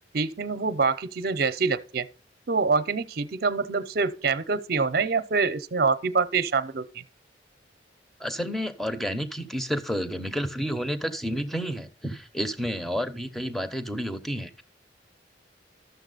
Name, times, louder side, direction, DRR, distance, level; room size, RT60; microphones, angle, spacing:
voice 1, 0.1-2.1 2.5-7.0, right 4 dB, 60° right, 0.7 m, -25 dB
voice 2, 8.2-14.6, equal, ahead, 0.8 m, -30 dB
12.0 x 7.0 x 3.9 m
head